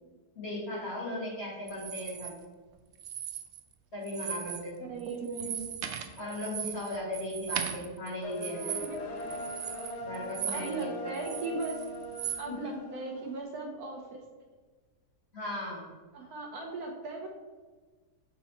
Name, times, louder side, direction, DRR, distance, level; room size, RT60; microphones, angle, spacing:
voice 1, 0.4-2.3 3.9-4.9 6.2-8.8 10.0-11.1 12.5-12.7 15.3-15.9, left 1 dB, 40° left, -5 dB, 2.3 m, -37 dB
sound 1, 1.7-2.3 2.9-3.7 4.0-4.7 5.0-10.8 11.1-12.4, right 9 dB, 85° right, 0.6 m, -38 dB
voice 2, 4.9-5.7 8.7-9.4 10.5-11.8 12.4-14.2 16.1-17.3, right 3 dB, 65° right, 1 dB, 1.3 m, -38 dB
sound 2, 8.2-13.4, equal, 85° left, 1.5 m, -41 dB
6.2 x 4.2 x 4.3 m, 1.4 s
omnidirectional pair, 1.8 m